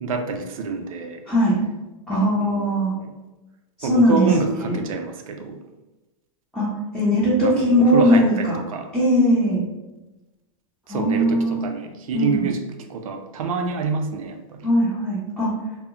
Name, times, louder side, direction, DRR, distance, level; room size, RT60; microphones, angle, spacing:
voice 1, 0.0-1.2 2.1-3.1 3.8-5.6 7.4-8.9 10.9-12.6 12.9-14.7, right 4 dB, 85° right, 5 dB, 0.4 m, -27 dB
voice 2, 1.3-1.6 2.1-2.9 3.8-4.8 6.5-6.7 6.9-8.5 8.9-9.6 10.9-11.6 12.1-12.5 14.6-15.5, equal, ahead, -12 dB, 0.8 m, -19 dB
2.1 x 2.0 x 3.6 m, 1.1 s
hypercardioid pair, 120°, 17 cm